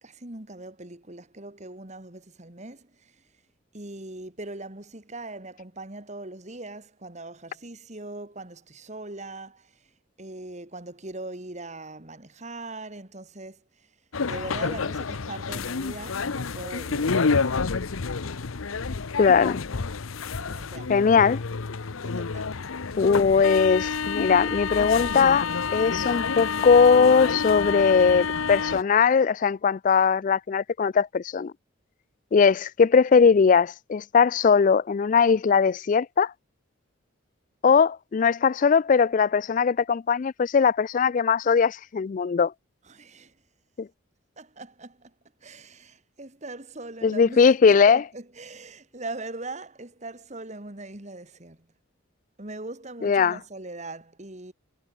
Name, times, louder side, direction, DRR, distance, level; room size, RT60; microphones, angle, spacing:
voice 1, 0.0-3.1 3.7-9.7 10.2-13.9 14.2-17.5 20.4-21.1 22.0-22.5 42.9-43.3 44.4-45.1 45.4-51.6 52.4-54.5, right 2 dB, 35° right, 2.1 m, -40 dB
sound 1, 14.1-28.8, left 5 dB, 90° left, 0.8 m, -29 dB
voice 2, 19.2-19.6 20.9-21.4 23.0-25.5 25.7-31.5 32.3-36.3 37.6-42.5 43.8-43.9 47.0-48.0 53.0-53.4, left 5 dB, 40° left, 0.3 m, -20 dB
head